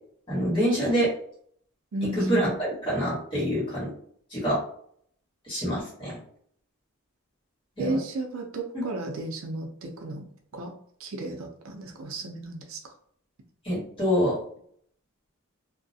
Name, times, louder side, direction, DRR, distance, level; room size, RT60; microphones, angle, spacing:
voice 1, 0.3-1.1 2.3-3.9 4.3-4.6 5.5-6.2 7.8-8.0 8.7-8.8 13.6-14.4, equal, 25° left, -8 dB, 1.2 m, -26 dB
voice 2, 1.9-2.5 7.8-10.3 10.5-10.7 11.0-12.9, right 2 dB, 70° right, 3 dB, 0.5 m, -33 dB
2.3 x 2.1 x 2.6 m, 0.62 s
head